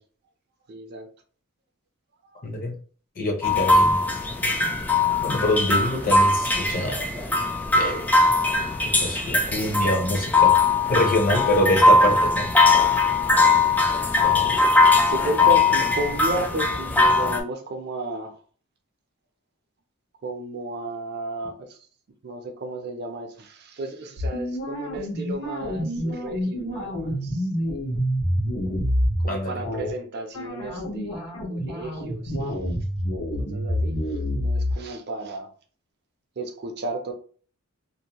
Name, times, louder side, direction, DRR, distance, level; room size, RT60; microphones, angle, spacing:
voice 1, 0.7-1.1 2.3-2.4 15.1-18.4 20.2-21.8 22.2-27.7 29.2-31.2 31.5-32.6 33.4-34.0 34.3-35.5 36.4-37.1, right 2 dB, 50° right, 0.5 m, -33 dB
voice 2, 2.4-2.7 3.2-4.0 5.2-7.3 7.7-8.1 9.0-10.5 10.9-12.5 14.2-14.5 29.3-29.6, left 1 dB, 40° left, 0.7 m, -25 dB
sound 1, 3.4-17.4, left 3 dB, 10° left, 0.3 m, -20 dB
sound 2, 24.2-29.3 29.6-29.9 30.3-34.7, equal, 85° left, 1.0 m, -27 dB
2.6 x 2.1 x 2.8 m
head